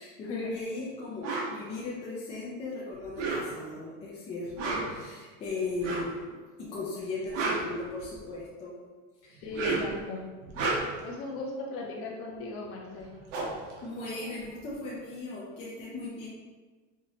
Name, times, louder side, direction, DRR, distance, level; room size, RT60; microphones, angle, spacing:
voice 1, 0.0-8.7 9.2-9.4 13.8-16.3, left 3 dB, 15° left, -6 dB, 0.4 m, -37 dB
sound 1, 1.2-1.5 3.0-3.8 4.4-5.0 5.8-6.2 7.1-8.4 9.4-10.0 10.4-11.1 12.6-12.7 13.0-14.7, right 3 dB, 70° right, 1.0 m, -32 dB
voice 2, 9.4-10.2 11.0-13.1, left 3 dB, 35° left, -2 dB, 0.8 m, -37 dB
4.7 x 2.7 x 3.0 m, 1.4 s
supercardioid pair, 155°, 38 cm